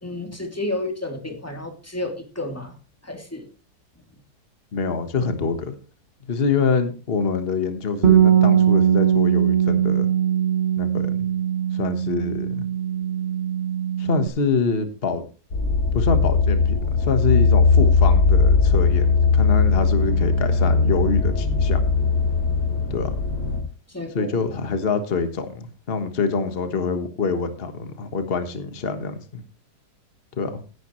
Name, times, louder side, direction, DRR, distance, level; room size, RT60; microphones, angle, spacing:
voice 1, 0.0-2.8 3.0-3.5 23.9-24.4, left 2 dB, 10° left, 3 dB, 2.7 m, -31 dB
voice 2, 4.7-5.8 6.3-10.1 10.8-11.3 11.7-12.6 14.0-15.3 15.9-21.8 22.9-23.1 24.1-29.4 30.4-30.6, left 4 dB, 35° left, 9 dB, 1.5 m, -25 dB
Bass guitar, 8.0-14.3, right 9 dB, 40° right, 2.3 m, -20 dB
sound 1, 15.5-23.6, left 4 dB, 85° left, 4.9 m, -19 dB
16.5 x 10.0 x 3.1 m, 0.35 s
omnidirectional pair, 1.8 m